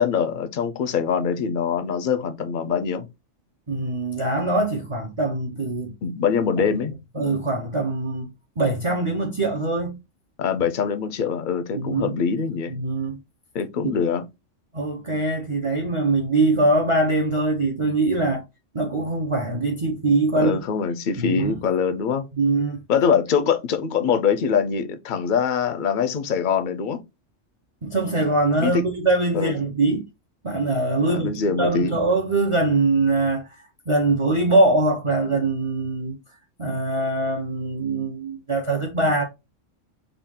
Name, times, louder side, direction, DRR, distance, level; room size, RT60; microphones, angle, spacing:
voice 1, 0.0-3.1 6.0-7.4 10.4-12.7 13.5-14.2 20.3-22.3 22.9-27.0 28.6-28.9 29.3-29.5 31.1-32.0, left 6 dB, 60° left, 0.5 m, -23 dB
voice 2, 3.7-5.9 7.1-8.3 8.6-10.0 11.7-12.1 12.7-13.2 14.7-18.4 18.7-20.6 21.2-21.5 22.4-22.8 27.8-30.0 30.4-36.2 36.6-39.2, right 2 dB, 35° right, 0.6 m, -22 dB
3.8 x 2.4 x 3.5 m
omnidirectional pair, 1.3 m